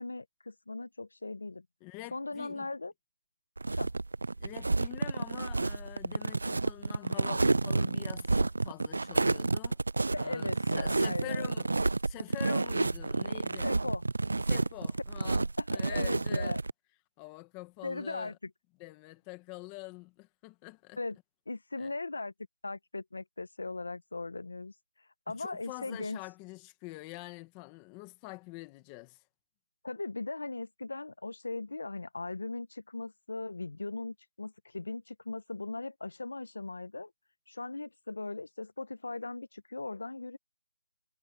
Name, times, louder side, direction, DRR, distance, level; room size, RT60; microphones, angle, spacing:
voice 1, 0.0-1.6 2.1-2.9 3.8-3.9 10.1-11.5 13.6-14.0 15.2-15.3 15.6-16.6 17.8-18.5 21.0-21.2 21.5-22.3 22.6-24.7 25.3-26.2 29.8-37.1 37.5-40.4, left 3 dB, 85° left, 1.2 m, -38 dB
voice 2, 1.8-2.7 4.4-9.8 10.1-11.7 12.0-13.8 14.5-16.6 17.2-18.3 18.8-21.0 21.8-21.9 25.3-29.2, left 22 dB, 10° left, 1.3 m, -46 dB
sound 1, 3.6-16.7, right 3 dB, 85° right, 0.4 m, -30 dB
hypercardioid pair, 175°, 0 cm